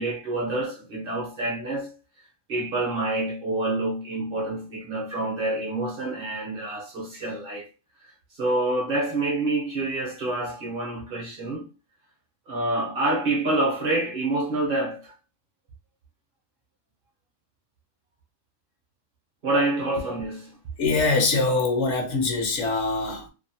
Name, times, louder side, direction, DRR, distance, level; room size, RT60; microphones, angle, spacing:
voice 1, 0.0-1.9 2.5-7.7 8.0-11.7 12.5-15.1 19.4-20.6, right 2 dB, 50° right, 0.8 m, -27 dB
voice 2, 20.8-23.3, left 3 dB, 70° left, 1.0 m, -23 dB
2.6 x 2.1 x 2.7 m
omnidirectional pair, 1.3 m